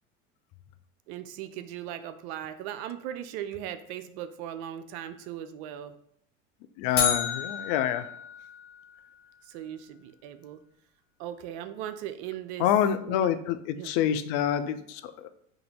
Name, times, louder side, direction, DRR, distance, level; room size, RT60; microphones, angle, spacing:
voice 1, 1.1-5.9 9.5-10.6 11.2-12.7 13.1-13.3 13.8-13.9, right 11 dB, 55° right, 10 dB, 0.5 m, -38 dB
voice 2, 6.8-8.1 12.6-15.3, left 10 dB, 55° left, 11 dB, 0.4 m, -27 dB
sound 1, 7.0-9.1, left 7 dB, 35° left, 0.9 m, -31 dB
2.7 x 2.5 x 4.3 m, 0.68 s
hypercardioid pair, 85°, 39 cm